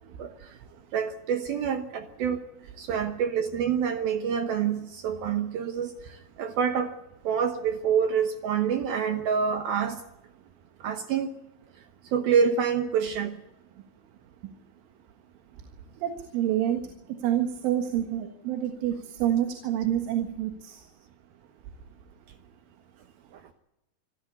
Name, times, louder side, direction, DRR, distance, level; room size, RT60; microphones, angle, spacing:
voice 1, 0.2-0.6 0.9-2.4 2.8-7.0 7.2-10.0 10.8-11.3 12.1-13.4, right 7 dB, 70° right, 2.4 m, -27 dB
voice 2, 16.0-20.9, right 11 dB, 90° right, 4.1 m, -28 dB
26.0 x 15.5 x 8.4 m
omnidirectional pair, 5.4 m